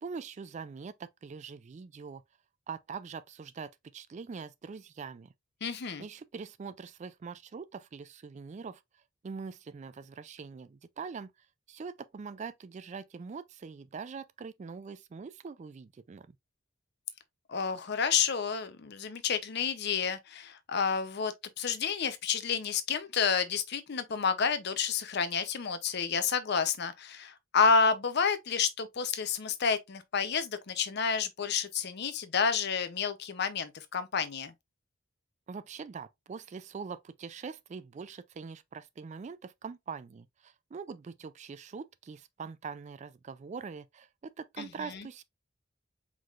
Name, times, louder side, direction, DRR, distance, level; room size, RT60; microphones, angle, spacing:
voice 1, 0.0-2.2 2.7-5.3 6.0-8.8 9.2-11.3 11.7-16.3 35.5-45.2, right 5 dB, 35° right, 0.3 m, -43 dB
voice 2, 5.6-6.0 17.5-34.5 44.6-45.1, left 6 dB, 55° left, 0.6 m, -30 dB
4.8 x 3.8 x 2.4 m
head